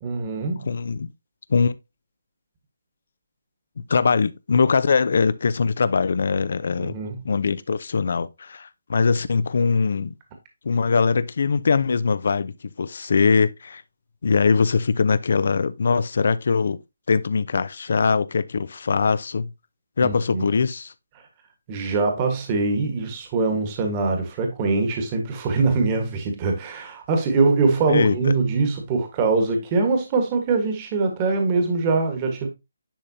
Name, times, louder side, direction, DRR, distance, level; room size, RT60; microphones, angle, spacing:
voice 1, 0.0-0.7 6.8-7.2 20.0-20.5 21.7-32.5, right 3 dB, 25° right, 1.4 m, -23 dB
voice 2, 0.6-1.1 1.5-1.7 3.8-7.0 7.2-10.1 10.6-12.5 12.8-13.8 14.2-16.8 17.1-19.5 20.0-20.9 27.9-28.2, left 5 dB, 60° left, 0.6 m, -21 dB
10.0 x 3.8 x 2.8 m
hypercardioid pair, 160°, 0 cm